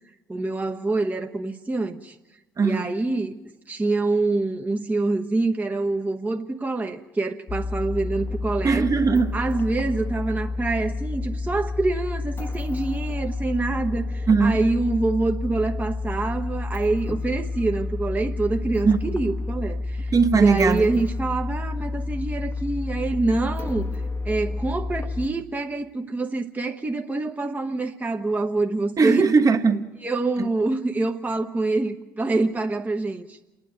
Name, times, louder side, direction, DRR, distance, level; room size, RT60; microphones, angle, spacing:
voice 1, 0.3-2.2 2.6-3.4 3.7-8.9 9.3-29.2 30.0-33.4, right 2 dB, 15° right, 1.1 m, -26 dB
voice 2, 2.6-2.9 8.6-9.3 14.3-14.6 18.8-19.0 20.1-20.9 29.0-29.9 30.4-30.5, right 5 dB, 35° right, 1.4 m, -19 dB
sound 1, 7.5-25.3, left 3 dB, 25° left, 1.2 m, -30 dB
28.5 x 10.0 x 9.3 m
hypercardioid pair, 55°, 10 cm